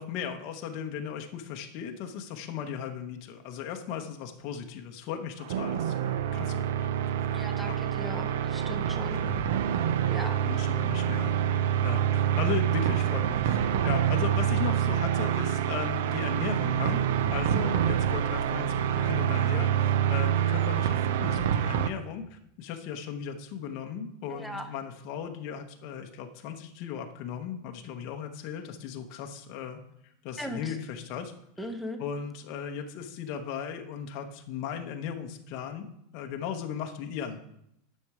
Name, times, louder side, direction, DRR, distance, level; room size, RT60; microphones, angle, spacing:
voice 1, 0.0-6.9 7.6-7.8 9.1-9.4 10.4-11.4 11.8-17.0 17.3-31.7 32.0-35.9 36.1-37.4, left 7 dB, 35° left, 3 dB, 0.8 m, -37 dB
sound 1, 5.4-21.9, right 9 dB, 65° right, 0.5 m, -26 dB
voice 2, 7.3-9.2 10.1-10.3 24.3-24.7 30.4-30.6 31.6-32.0, equal, ahead, 4 dB, 0.5 m, -38 dB
10.5 x 6.5 x 4.8 m, 0.77 s
supercardioid pair, 180°, 0 cm